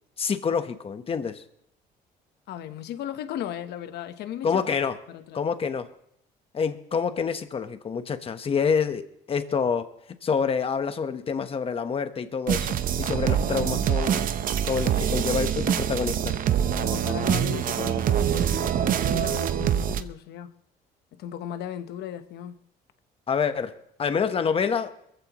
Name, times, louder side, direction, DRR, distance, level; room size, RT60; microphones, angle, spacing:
voice 1, 0.2-1.4 4.4-5.0 5.3-5.9 6.5-9.9 10.2-14.3 14.6-16.4 23.3-24.9, left 6 dB, 35° left, 1.1 m, -27 dB
voice 2, 2.5-4.6 5.1-5.4 14.7-14.8 16.7-20.5 21.2-22.6, left 10 dB, 75° left, 1.1 m, -36 dB
sound 1, 12.5-20.0, right 9 dB, 55° right, 0.8 m, -25 dB
23.0 x 15.0 x 3.1 m
cardioid pair, 110°, 17 cm